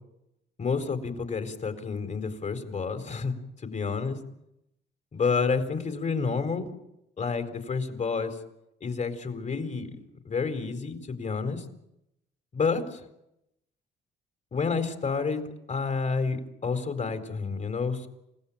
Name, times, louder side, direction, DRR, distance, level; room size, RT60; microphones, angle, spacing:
voice 1, 0.6-3.4 3.6-4.2 5.1-6.7 7.2-8.3 8.8-10.0 10.2-11.6 12.5-12.8 14.5-15.4 15.7-18.1, left 5 dB, 40° left, 8 dB, 4.3 m, -29 dB
29.5 x 17.0 x 8.9 m, 0.86 s
cardioid pair, 95°, 19 cm